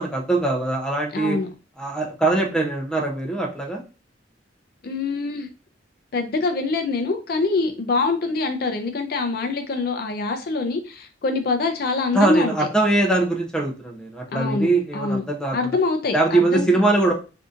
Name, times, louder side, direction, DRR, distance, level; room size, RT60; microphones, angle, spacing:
voice 1, 0.0-1.4 1.8-3.8 12.1-15.8 16.1-17.1, right 2 dB, 5° left, 0 dB, 0.6 m, -22 dB
voice 2, 1.1-1.5 4.8-5.5 6.1-12.5 14.3-15.2 15.5-16.7, left 3 dB, 55° left, 6 dB, 0.4 m, -24 dB
3.7 x 2.6 x 2.4 m, 0.33 s
head